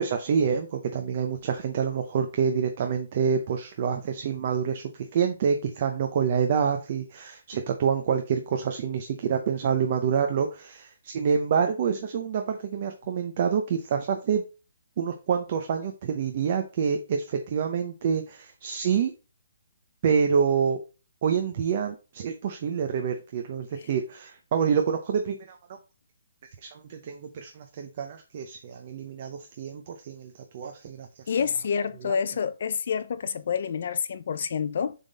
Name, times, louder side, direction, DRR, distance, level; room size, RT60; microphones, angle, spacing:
voice 1, 0.0-14.4 15.0-19.1 20.0-20.8 21.2-25.6 26.6-31.2 32.0-32.2, right 7 dB, 30° right, 0.7 m, -27 dB
voice 2, 31.3-35.0, left 6 dB, 45° left, 0.5 m, -28 dB
7.3 x 3.6 x 4.0 m
hypercardioid pair, 175°, 0 cm